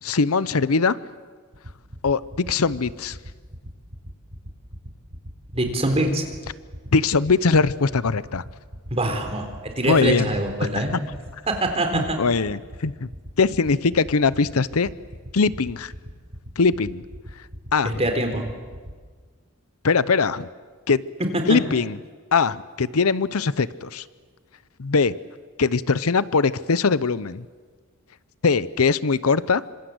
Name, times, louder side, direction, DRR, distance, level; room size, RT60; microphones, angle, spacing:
voice 1, 0.0-1.0 2.0-3.2 6.9-8.4 9.9-10.3 10.7-11.0 11.9-13.1 13.4-14.9 15.3-15.9 16.6-17.0 17.7-18.0 19.8-20.5 20.9-21.0 21.5-22.0 22.3-24.0 24.8-25.1 25.6-27.4 28.4-29.6, left 4 dB, 85° left, 17 dB, 0.8 m, -21 dB
sound 1, 1.5-18.9, equal, 55° right, 6.3 m, -38 dB
voice 2, 5.5-6.2 8.9-10.9 11.5-12.2 17.8-18.4, right 1 dB, 30° right, 5 dB, 4.0 m, -24 dB
28.0 x 26.0 x 8.0 m, 1.5 s
head